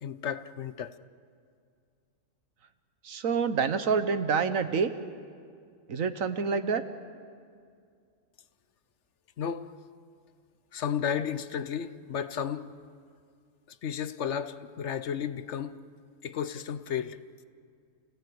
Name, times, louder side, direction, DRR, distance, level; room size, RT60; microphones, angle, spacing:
voice 1, 0.0-1.0 9.4-9.7 10.7-12.7 13.8-15.8 16.2-17.2, left 8 dB, 65° left, 13 dB, 1.0 m, -33 dB
voice 2, 3.0-4.9 5.9-6.8, right 5 dB, 80° right, 10 dB, 1.5 m, -27 dB
29.5 x 17.5 x 8.0 m, 2.2 s
omnidirectional pair, 1.4 m